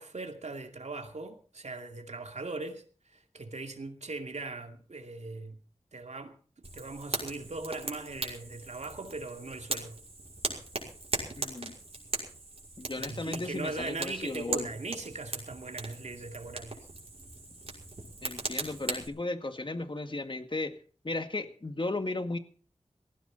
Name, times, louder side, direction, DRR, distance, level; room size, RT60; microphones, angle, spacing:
voice 1, 0.0-5.6 5.9-6.3 6.7-10.0 13.0-16.8, right 3 dB, 75° right, 2.5 m, -40 dB
Fire, 6.6-19.1, right 2 dB, 55° right, 5.9 m, -39 dB
voice 2, 11.4-11.8 12.8-14.7 18.2-20.7 21.0-22.4, left 2 dB, 45° left, 1.9 m, -35 dB
19.5 x 16.0 x 4.1 m
wide cardioid pair, 45°, 12 cm